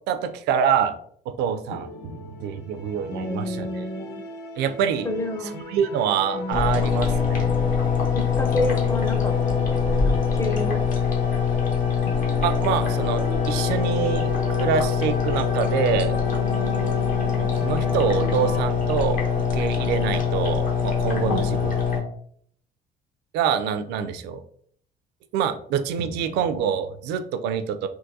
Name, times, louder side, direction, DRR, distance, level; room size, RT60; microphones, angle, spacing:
voice 1, 0.1-0.9 1.3-3.7 4.6-5.1 5.5-7.5 10.1-10.2 12.4-16.2 17.3-19.2 19.5-21.8 23.3-24.4 25.3-27.9, right 8 dB, 85° right, 10 dB, 0.4 m, -26 dB
sound 1, 1.7-18.6, left 2 dB, 85° left, 0.6 m, -35 dB
voice 2, 3.1-4.2 5.0-5.6 6.3-6.6 8.1-9.3 9.7-10.8 21.2-21.5, left 1 dB, 15° left, 6 dB, 0.5 m, -30 dB
sound 2, 6.5-22.0, left 6 dB, 50° left, 0.9 m, -23 dB
3.7 x 2.5 x 2.6 m, 0.62 s
cardioid pair, 110°, 17 cm